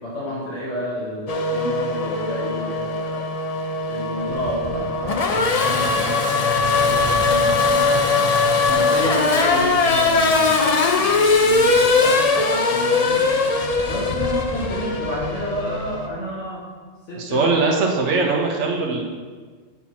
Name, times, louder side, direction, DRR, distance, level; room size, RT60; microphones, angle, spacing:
voice 1, 0.0-3.2 3.9-8.1 8.7-11.0 11.4-13.2 13.8-16.6 17.1-17.9, equal, 70° left, -6 dB, 1.7 m, -30 dB
Race car auto racing / Accelerating revving vroom, 1.3-16.1, left 3 dB, 45° left, 0.5 m, -20 dB
voice 2, 17.2-19.0, right 3 dB, 65° right, 0 dB, 1.3 m, -21 dB
7.0 x 4.5 x 5.6 m, 1.5 s
omnidirectional pair, 1.3 m